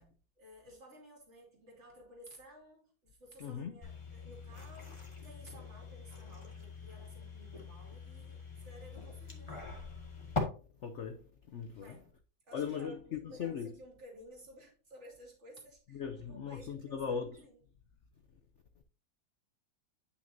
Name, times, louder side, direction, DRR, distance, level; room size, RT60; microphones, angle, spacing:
voice 1, 0.0-9.6 11.8-12.1 12.4-17.6, equal, 40° right, 2.8 m, -56 dB
voice 2, 3.4-3.8 10.8-12.0 12.5-13.7 15.9-17.4, left 7 dB, 60° left, 0.8 m, -39 dB
sound 1, 3.8-10.4, left 4 dB, 15° left, 1.8 m, -43 dB
9.6 x 6.1 x 2.7 m
omnidirectional pair, 2.0 m